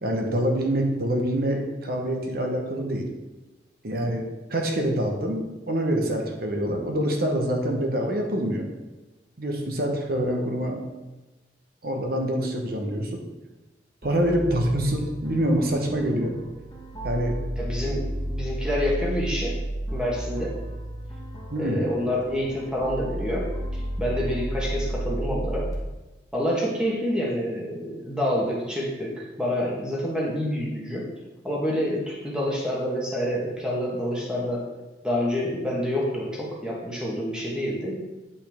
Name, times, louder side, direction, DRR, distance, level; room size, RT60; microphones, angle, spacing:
voice 1, 0.0-3.1 3.8-8.7 9.4-10.8 11.8-13.2 14.0-16.3 17.0-17.4 17.8-17.9 21.5-21.8, equal, 55° right, 2 dB, 1.1 m, -26 dB
sound 1, 14.0-25.7, right 1 dB, 20° left, 1.3 m, -32 dB
voice 2, 17.6-19.6 19.9-20.6 21.6-25.6 26.3-31.1 31.4-34.7 35.0-38.0, equal, 5° right, -3 dB, 1.2 m, -28 dB
8.7 x 5.6 x 3.5 m, 1.1 s
head